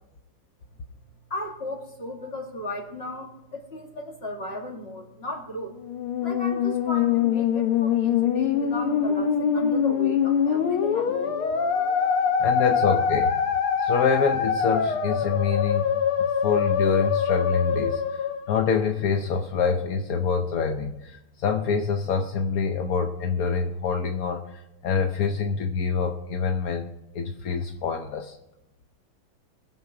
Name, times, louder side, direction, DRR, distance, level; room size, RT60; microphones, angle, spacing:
voice 1, 1.3-11.5, left 1 dB, 30° left, 1 dB, 2.3 m, -36 dB
Musical instrument, 5.8-19.1, left 7 dB, 90° left, 1.9 m, -24 dB
voice 2, 12.4-13.4 13.8-15.9 16.2-26.9 27.1-28.4, left 5 dB, 65° left, 4 dB, 0.9 m, -26 dB
20.5 x 7.3 x 4.8 m, 0.91 s
omnidirectional pair, 2.3 m